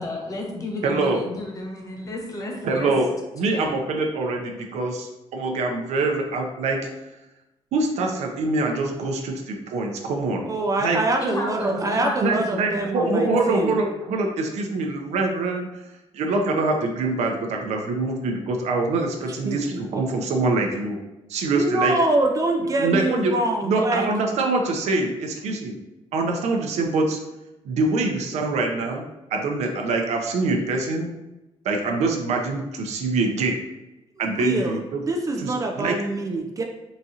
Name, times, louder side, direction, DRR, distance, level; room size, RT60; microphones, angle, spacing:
voice 1, 0.0-2.9 3.5-3.7 11.2-12.9 13.2-13.4, left 1 dB, 30° left, 0 dB, 0.7 m, -32 dB
voice 2, 0.8-1.2 2.6-3.1 3.4-6.8 7.7-10.5 10.8-11.0 11.7-11.8 12.2-15.7 16.1-21.0 21.3-21.9 22.8-23.3 23.6-25.8 26.1-27.2 27.6-31.1 31.6-33.6 34.2-35.0 35.4-36.0, right 3 dB, 85° right, 2 dB, 0.5 m, -24 dB
voice 3, 10.4-13.8 19.4-19.6 19.9-20.0 21.5-24.1 25.4-25.6 34.2-34.8 35.1-36.6, right 2 dB, 30° right, 2 dB, 0.3 m, -25 dB
4.0 x 2.7 x 2.4 m, 0.96 s
cardioid pair, 130°, 11 cm